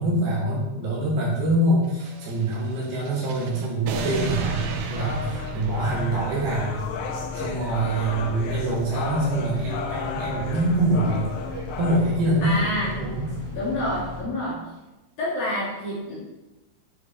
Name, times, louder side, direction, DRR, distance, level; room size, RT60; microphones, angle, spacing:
voice 1, 0.0-6.8 7.3-11.3 11.8-12.7 13.0-13.3, right 1 dB, 55° right, -6 dB, 3.6 m, -25 dB
sound 1, 1.9-6.7, right 5 dB, 85° right, 3.5 m, -34 dB
sound 2, 4.0-12.0, left 6 dB, 80° left, 2.5 m, -34 dB
sound 3, 4.1-14.2, left 2 dB, 40° right, 2.3 m, -36 dB
voice 2, 12.4-13.1 13.5-14.7 15.2-16.2, left 1 dB, 50° left, -8 dB, 3.6 m, -28 dB
10.5 x 6.5 x 4.4 m, 1.1 s
omnidirectional pair, 6.0 m